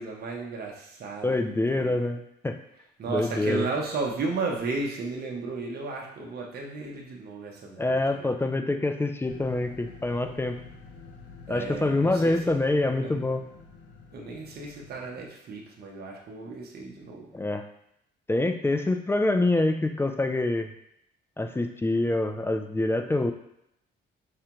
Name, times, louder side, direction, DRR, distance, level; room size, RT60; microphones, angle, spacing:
voice 1, 0.0-1.4 1.7-2.0 3.0-8.3 11.5-12.4 13.0-13.2 14.1-17.3, right 4 dB, 50° right, -1 dB, 0.7 m, -34 dB
voice 2, 1.2-2.6 3.1-3.7 7.8-10.6 11.5-13.4 17.3-17.6 18.3-20.7 21.4-23.3, left 2 dB, 10° left, 5 dB, 0.3 m, -26 dB
sound 1, 9.3-15.2, left 4 dB, 70° left, 0.6 m, -48 dB
4.9 x 2.2 x 2.9 m, 0.78 s
cardioid pair, 90°, 20 cm